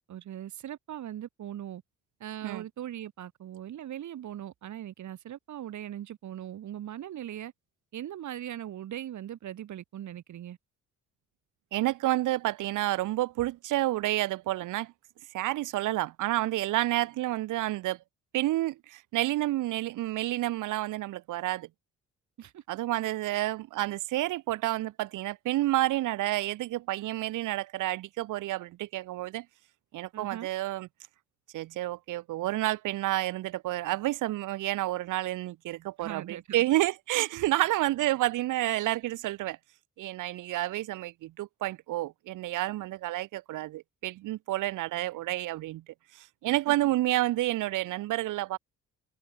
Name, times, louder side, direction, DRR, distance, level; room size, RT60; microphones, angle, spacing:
voice 1, 0.1-1.8 2.2-7.5 7.9-10.6 22.4-22.6 23.3-23.4 30.1-30.5 36.0-36.6 37.6-37.7 46.5-46.7, right 11 dB, 70° right, 5.3 m, -40 dB
voice 2, 11.7-14.9 15.3-18.0 18.3-21.7 22.7-29.5 29.9-30.9 31.5-39.6 40.0-45.8 46.1-48.6, right 16 dB, 85° right, 1.7 m, -30 dB
cardioid pair, 90°, 30 cm